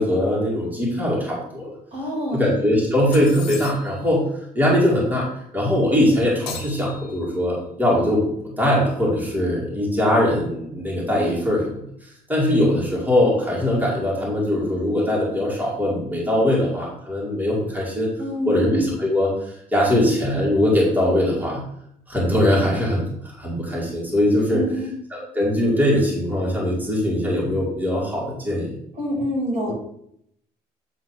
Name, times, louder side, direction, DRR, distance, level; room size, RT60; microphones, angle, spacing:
voice 1, 0.0-1.7 2.3-4.2 4.5-5.3 5.5-11.8 12.3-18.1 18.5-21.6 22.1-23.0 23.4-24.6 25.1-28.7, left 1 dB, 10° right, -6 dB, 2.6 m, -21 dB
voice 2, 1.9-2.4 18.2-18.7 24.5-24.9 28.9-29.8, equal, 40° right, -2 dB, 3.1 m, -26 dB
sound 1, 3.1-4.1 6.5-7.5, left 8 dB, 85° left, 1.4 m, -38 dB
8.4 x 3.9 x 4.5 m, 0.72 s
cardioid pair, 110°, 17 cm